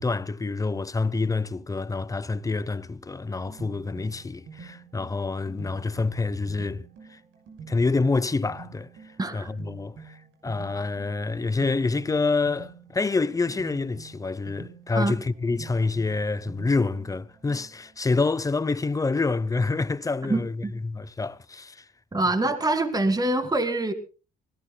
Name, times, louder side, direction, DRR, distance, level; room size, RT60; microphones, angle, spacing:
voice 1, 0.0-6.8 7.1-7.2 7.7-8.9 9.3-10.2 10.4-21.8, left 3 dB, 15° left, 0.7 m, -27 dB
sound 1, 3.1-18.0, right 5 dB, 75° right, 5.9 m, -47 dB
voice 2, 9.2-9.5 15.0-15.1 20.3-20.7 22.1-23.9, right 2 dB, 20° right, 2.0 m, -25 dB
25.5 x 17.5 x 2.3 m
cardioid pair, 90°, 20 cm